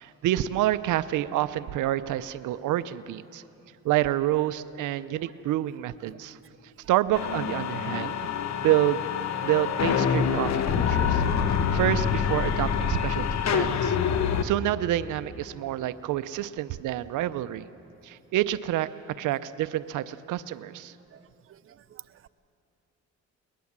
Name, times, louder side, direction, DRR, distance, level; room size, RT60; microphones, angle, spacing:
voice 1, 0.0-3.4 3.8-6.4 6.9-8.2 8.6-9.0 9.4-11.2 11.7-14.0 14.4-17.6 18.0-18.9 19.2-20.9, right 14 dB, 85° right, 14 dB, 0.6 m, -28 dB
sound 1, 7.2-14.4, left 7 dB, 60° left, 1.3 m, -26 dB
voice 2, 21.5-22.3, right 11 dB, 45° right, 13 dB, 0.7 m, -49 dB
22.0 x 20.5 x 7.3 m, 2.9 s
cardioid pair, 90°, 30 cm